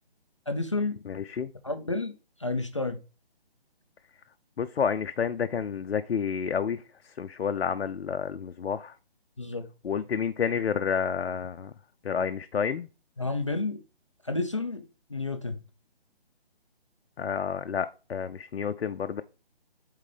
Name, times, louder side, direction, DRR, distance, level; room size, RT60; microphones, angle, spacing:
voice 1, 0.5-1.0 1.6-2.1 2.4-3.0 9.4-9.7 13.2-13.8 14.3-14.8 15.1-15.6, left 3 dB, 30° left, 0.4 m, -30 dB
voice 2, 1.1-1.5 4.6-6.8 7.2-8.9 9.8-11.7 12.0-12.9 17.2-19.2, left 7 dB, 85° left, 0.5 m, -29 dB
8.2 x 3.8 x 3.3 m
figure-of-eight pair, 150°, 31 cm